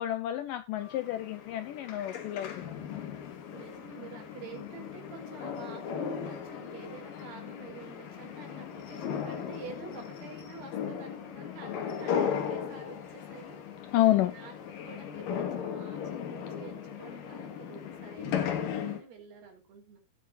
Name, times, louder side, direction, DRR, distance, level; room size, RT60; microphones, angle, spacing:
voice 1, 0.0-2.8 13.9-14.3, left 14 dB, 80° left, 1.9 m, -29 dB
sound 1, 0.8-19.0, left 8 dB, 65° left, 3.1 m, -37 dB
voice 2, 3.5-13.8 14.2-14.5 14.8-20.0, right 4 dB, 85° right, 5.4 m, -48 dB
18.0 x 7.6 x 2.6 m
omnidirectional pair, 4.5 m